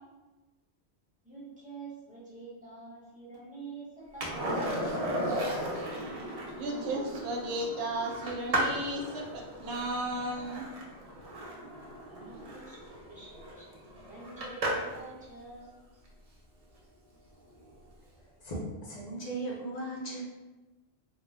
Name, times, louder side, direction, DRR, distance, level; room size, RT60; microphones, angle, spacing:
voice 1, 1.2-5.1 12.1-12.8 13.1-15.8, right 3 dB, 10° right, -8 dB, 0.8 m, -47 dB
Skateboard, 4.2-15.1 17.6-17.7, right 1 dB, 50° right, 0.5 m, -35 dB
voice 2, 6.6-10.6, right 1 dB, 70° right, 0 dB, 0.8 m, -34 dB
voice 3, 18.4-20.2, right 1 dB, 45° left, -4 dB, 0.7 m, -37 dB
2.4 x 2.1 x 3.3 m, 1.1 s
omnidirectional pair, 1.1 m